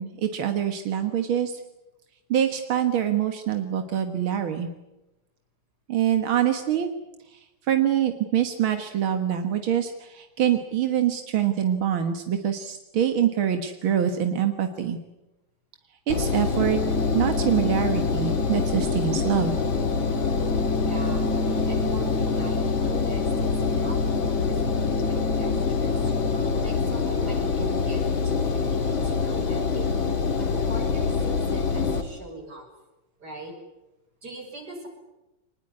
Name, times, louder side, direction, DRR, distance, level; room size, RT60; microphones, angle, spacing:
voice 1, 0.0-1.5 2.3-4.7 5.9-6.9 7.3-7.4 7.7-15.0 16.1-16.8 17.1-19.6, right 10 dB, 90° right, 7 dB, 2.4 m, -25 dB
Engine, 16.1-32.0, left 5 dB, 75° left, 3.0 m, -25 dB
sound 1, 16.6-26.6, right 1 dB, 5° left, 2.0 m, -34 dB
voice 2, 20.7-26.1 26.6-29.9 30.4-32.7 33.2-33.5 34.2-34.9, right 1 dB, 50° right, 3 dB, 6.6 m, -41 dB
24.5 x 21.0 x 9.8 m, 0.99 s
omnidirectional pair, 2.2 m